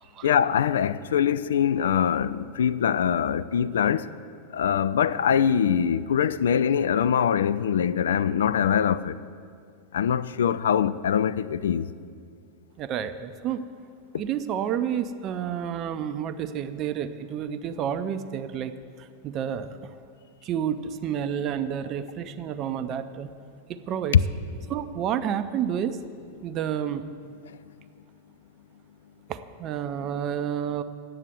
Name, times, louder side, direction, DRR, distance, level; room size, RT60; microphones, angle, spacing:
voice 1, 0.2-4.2 4.5-9.2 9.9-11.9 27.5-27.6, left 8 dB, 65° left, 0.3 m, -23 dB
voice 2, 12.8-13.7 14.2-18.7 19.0-19.9 20.4-23.3 23.7-24.2 24.7-26.0 26.4-27.1 29.3-30.8, right 9 dB, 35° right, 0.5 m, -30 dB
9.0 x 7.7 x 8.0 m
figure-of-eight pair, 90°, 0 cm